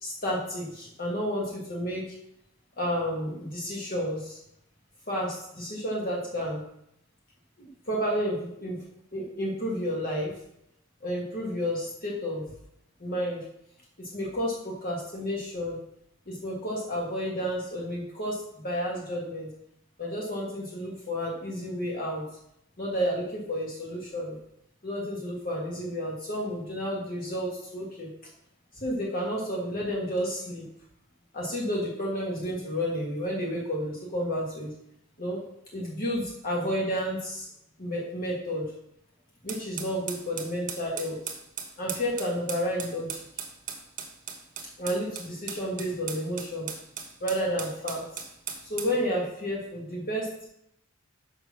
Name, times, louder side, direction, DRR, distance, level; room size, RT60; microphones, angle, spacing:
voice 1, 0.0-2.1 2.8-4.4 5.1-6.6 7.6-8.8 9.1-10.3 11.0-12.5 13.0-13.4 14.0-15.8 16.3-19.5 20.0-22.2 22.8-24.4 24.8-28.1 28.7-30.6 31.3-34.7 35.2-35.4 35.7-37.5 37.8-38.6 39.4-41.2 41.8-43.2 44.8-46.7 47.2-48.2 48.6-50.5, equal, 45° left, -3 dB, 1.7 m, -31 dB
sound 1, 39.5-49.0, right 7 dB, 40° right, 1.2 m, -38 dB
6.8 x 5.9 x 6.0 m, 0.77 s
head